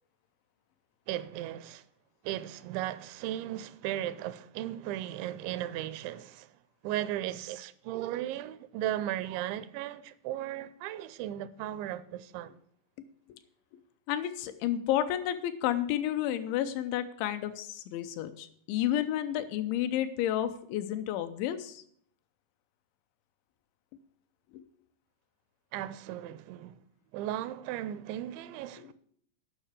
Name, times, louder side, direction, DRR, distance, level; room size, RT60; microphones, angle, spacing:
voice 1, 1.1-1.8 2.2-6.5 6.8-12.5 25.7-26.8 27.1-28.9, right 13 dB, 85° right, 2.9 m, -36 dB
voice 2, 14.1-21.8 24.5-24.6 28.8-28.9, left 11 dB, 90° left, 3.1 m, -31 dB
10.5 x 5.8 x 8.3 m
omnidirectional pair, 5.2 m